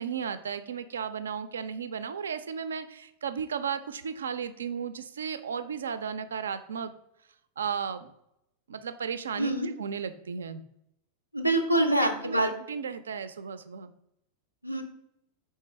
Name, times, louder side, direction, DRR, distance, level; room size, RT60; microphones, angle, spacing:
voice 1, 0.0-6.9 7.6-8.1 8.7-9.5 9.8-10.6 11.7-13.9, right 7 dB, 70° right, 11 dB, 0.3 m, -34 dB
voice 2, 9.4-9.7 11.3-12.5 14.6-14.8, right 1 dB, 85° left, 6 dB, 0.5 m, -25 dB
4.5 x 3.3 x 3.1 m, 0.79 s
figure-of-eight pair, 90°, 0 cm